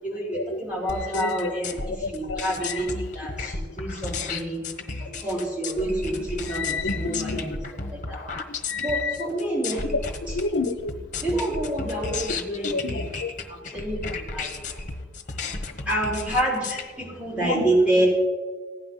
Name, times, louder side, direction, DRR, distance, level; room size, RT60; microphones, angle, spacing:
voice 1, 0.0-1.8 2.1-4.6 5.2-7.6 7.9-8.2 8.8-9.9 11.2-13.1 13.5-14.0 14.3-14.5 15.9-18.1, right 1 dB, 5° right, -5 dB, 4.7 m, -27 dB
sound 1, 0.9-16.8, left 4 dB, 45° left, 1.2 m, -33 dB
voice 2, 1.0-1.5 1.8-2.8 6.5-7.6 8.7-9.2 10.3-10.9 12.6-13.3 17.4-17.6, left 3 dB, 80° left, 10 dB, 0.7 m, -30 dB
16.0 x 9.9 x 5.7 m, 1.5 s
head